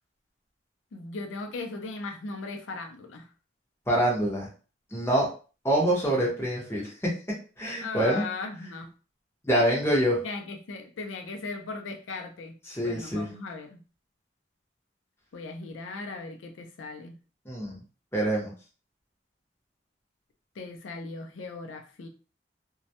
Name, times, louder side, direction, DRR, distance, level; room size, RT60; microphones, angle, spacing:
voice 1, 0.9-3.3 7.8-8.9 10.2-12.6 12.8-13.8 15.3-17.2 20.6-22.1, left 3 dB, 85° left, 4 dB, 0.4 m, -38 dB
voice 2, 3.9-4.5 4.9-5.3 5.6-7.1 7.6-8.2 9.4-10.2 12.7-13.2 17.5-17.8 18.1-18.5, right 1 dB, 15° left, -4 dB, 0.7 m, -25 dB
2.2 x 2.0 x 2.7 m, 0.36 s
head